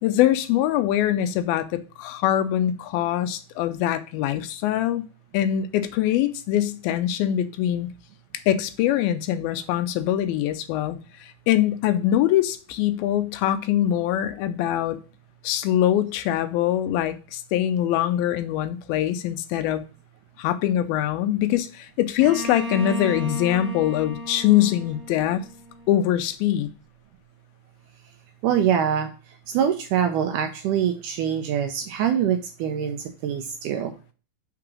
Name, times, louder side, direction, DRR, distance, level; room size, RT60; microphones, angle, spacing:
voice 1, 0.0-1.7 2.0-5.0 5.3-7.9 8.5-15.0 15.4-19.8 20.4-25.5 25.9-26.7, left 12 dB, 85° left, 2.5 m, -23 dB
Bowed string instrument, 22.2-25.9, right 1 dB, 50° right, 1.3 m, -34 dB
voice 2, 28.4-29.1 29.5-33.9, right 9 dB, 80° right, 1.8 m, -24 dB
5.8 x 3.8 x 6.0 m
omnidirectional pair, 4.3 m